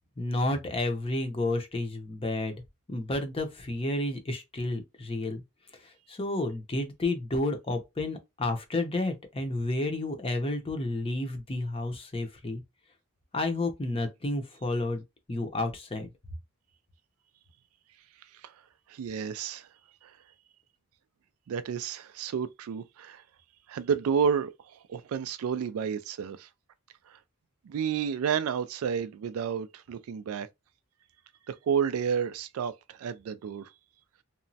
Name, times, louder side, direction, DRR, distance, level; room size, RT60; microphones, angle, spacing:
voice 1, 0.2-2.6 2.9-5.4 5.8-12.6 13.3-15.0 15.3-16.1, left 2 dB, 25° left, 0.6 m, -31 dB
voice 2, 18.9-19.7 20.0-20.1 21.5-23.2 23.7-26.5 27.1-27.2 27.6-30.5 31.5-33.7, right 7 dB, 70° right, 0.3 m, -31 dB
2.9 x 2.0 x 2.7 m
head